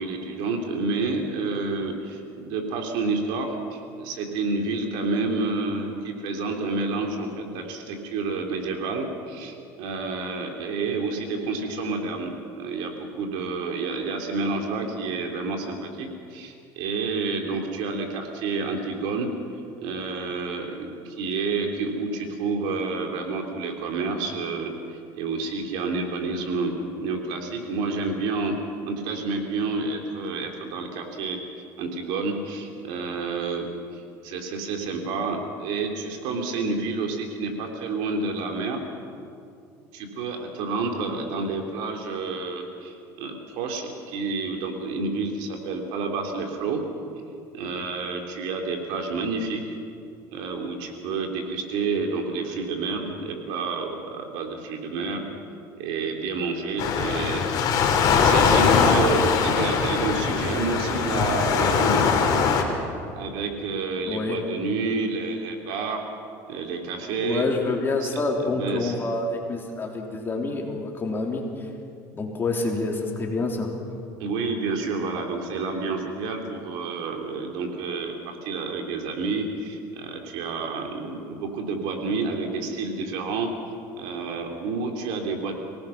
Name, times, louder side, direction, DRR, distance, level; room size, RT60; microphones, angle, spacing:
voice 1, 0.0-19.3 19.8-28.6 28.9-31.4 31.8-38.8 39.9-46.8 47.5-49.6 50.3-55.2 55.8-57.8 58.2-62.5 63.1-66.0 66.5-67.4 68.0-68.1 68.4-68.9 74.2-83.5 83.9-85.6, right 3 dB, 75° right, 3 dB, 3.4 m, -29 dB
Waves surf, 56.8-62.6, left 6 dB, 50° left, 3.1 m, -21 dB
voice 2, 64.0-64.4 67.2-71.7 72.1-73.7, left 3 dB, 25° left, 1 dB, 3.5 m, -27 dB
25.5 x 18.5 x 5.9 m, 2.4 s
supercardioid pair, 110°, 8 cm